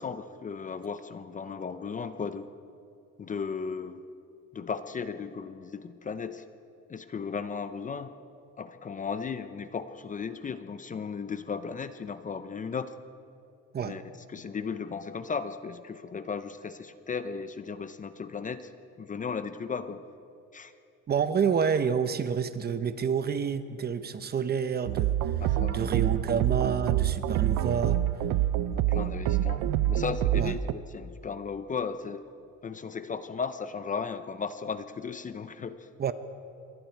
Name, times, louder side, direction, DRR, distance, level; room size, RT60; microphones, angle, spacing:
voice 1, 0.0-2.5 3.2-4.0 4.5-6.4 6.9-8.1 8.6-12.9 13.8-14.0 14.3-18.7 19.0-20.0 20.5-20.7 25.4-26.0 28.5-32.2 32.6-35.9, left 5 dB, 25° left, 11 dB, 0.7 m, -36 dB
voice 2, 21.1-25.2 25.7-28.0 30.4-30.5 36.0-36.1, right 7 dB, 30° right, 11 dB, 0.8 m, -28 dB
sound 1, 24.9-30.7, right 12 dB, 80° right, 0.7 m, -27 dB
27.0 x 22.5 x 4.6 m, 2.7 s
cardioid pair, 145°, 31 cm